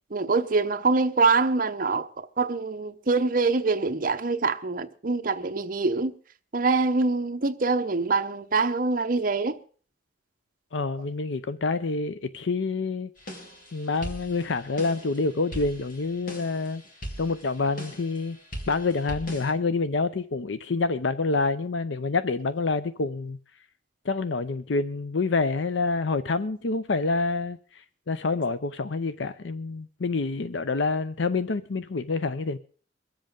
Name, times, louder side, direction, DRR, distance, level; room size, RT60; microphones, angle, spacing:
voice 1, 0.1-2.1 2.4-6.1 6.5-9.6, right 4 dB, 50° right, 0.9 m, -24 dB
voice 2, 10.7-13.1 13.7-16.8 17.2-18.4 18.7-23.4 24.0-32.6, left 3 dB, 80° left, 0.6 m, -27 dB
sound 1, 13.2-19.5, equal, 50° left, 2.6 m, -41 dB
23.0 x 7.7 x 5.2 m
head